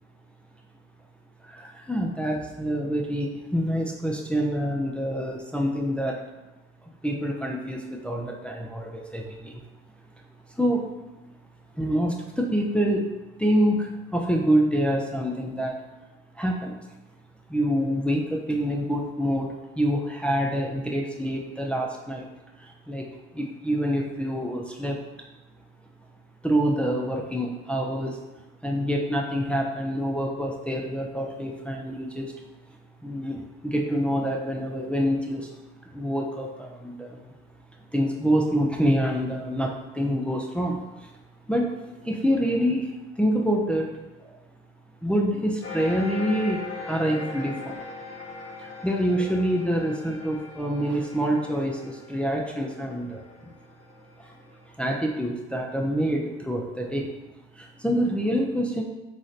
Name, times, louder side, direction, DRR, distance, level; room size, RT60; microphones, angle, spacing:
voice 1, 1.4-6.2 7.0-9.6 10.5-10.9 11.8-13.1 13.4-15.8 16.4-16.8 17.5-22.3 22.6-23.1 23.3-25.0 26.4-28.2 28.6-32.3 33.0-35.5 35.9-37.3 37.9-41.1 41.5-41.7 42.0-43.9 44.2-44.3 45.0-47.8 48.6-53.5 54.2-54.3 54.8-57.1 57.5-58.8, equal, 5° left, -1 dB, 0.6 m, -26 dB
sound 1, 45.6-54.6, left 3 dB, 45° left, 1.2 m, -40 dB
3.7 x 3.3 x 4.0 m, 1.1 s
supercardioid pair, 70°, 31 cm